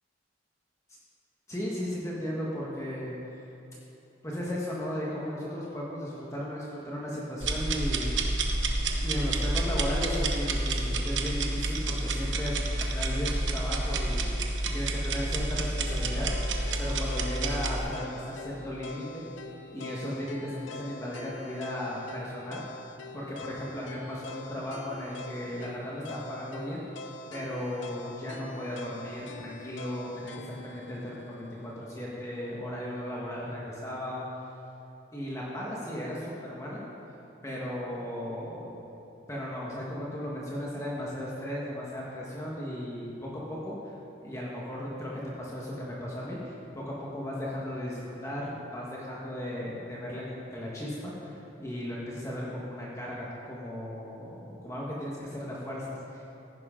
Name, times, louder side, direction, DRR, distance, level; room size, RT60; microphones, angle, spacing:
voice 1, 1.5-3.4 4.2-8.3 9.0-12.5 12.9-19.2 19.7-22.6 23.1-26.8 27.3-34.2 35.1-36.8 37.4-38.8 39.3-43.9 44.2-56.2, equal, 15° left, -5 dB, 1.4 m, -36 dB
sound 1, 7.4-17.8, right 2 dB, 70° right, 1.0 m, -29 dB
sound 2, 15.9-32.0, left 2 dB, 70° left, 0.6 m, -45 dB
15.0 x 10.5 x 3.7 m, 2.9 s
head